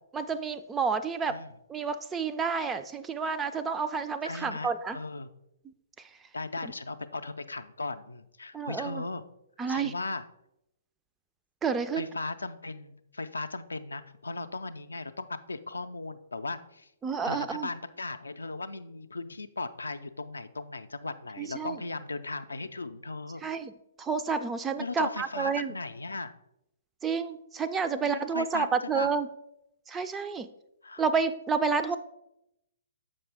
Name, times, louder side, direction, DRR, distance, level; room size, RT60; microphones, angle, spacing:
voice 1, 0.1-1.4 1.7-5.0 8.5-9.0 9.6-9.9 11.6-12.1 17.0-17.7 21.4-21.8 23.4-23.7 24.0-25.7 27.0-29.3 29.9-30.5 31.0-32.0, right 5 dB, 15° right, 10 dB, 0.3 m, -30 dB
voice 2, 4.2-5.3 6.3-9.2 9.7-10.2 12.0-16.9 17.2-23.4 24.8-26.3 27.9-29.1 30.8-31.0, left 3 dB, 80° left, 10 dB, 0.4 m, -37 dB
7.0 x 5.4 x 3.4 m, 0.83 s
figure-of-eight pair, 120°, 0 cm